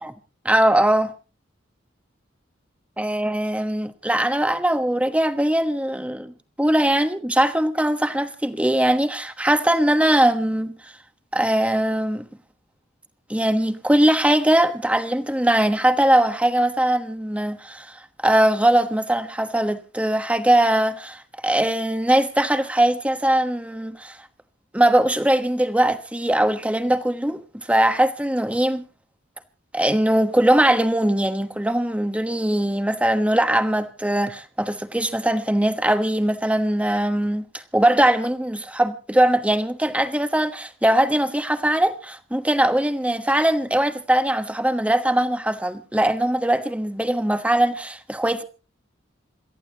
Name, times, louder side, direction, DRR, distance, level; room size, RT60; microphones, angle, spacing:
voice 1, 0.4-1.1 3.0-10.9 11.3-12.2 13.3-18.0 18.2-24.2 24.7-27.4 27.7-28.8 29.7-48.4, right 1 dB, 5° right, 1.1 m, -21 dB
27.5 x 14.0 x 2.9 m
head